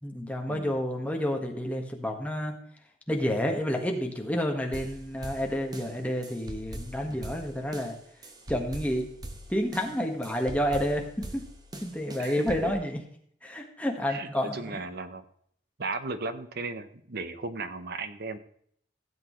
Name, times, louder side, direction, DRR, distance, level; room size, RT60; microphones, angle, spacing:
voice 1, 0.0-2.5 3.1-8.0 8.5-9.1 9.5-11.4 11.8-13.0 13.4-14.7, equal, 10° left, 2 dB, 1.5 m, -29 dB
sound 1, 4.7-12.7, right 1 dB, 20° right, 1.1 m, -43 dB
voice 2, 12.2-12.7 14.1-15.2 15.8-18.4, right 3 dB, 60° right, 10 dB, 0.9 m, -36 dB
16.0 x 8.1 x 3.2 m, 0.64 s
head